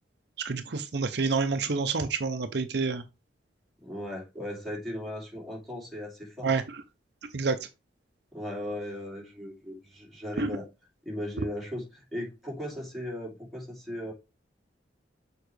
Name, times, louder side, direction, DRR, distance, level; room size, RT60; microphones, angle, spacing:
voice 1, 0.4-3.0 6.4-6.6 7.3-7.6 10.4-10.5, right 4 dB, 60° right, 0.6 m, -28 dB
voice 2, 3.8-6.5 8.3-10.7 11.0-14.1, left 1 dB, ahead, 2.6 m, -37 dB
6.9 x 4.5 x 3.2 m
head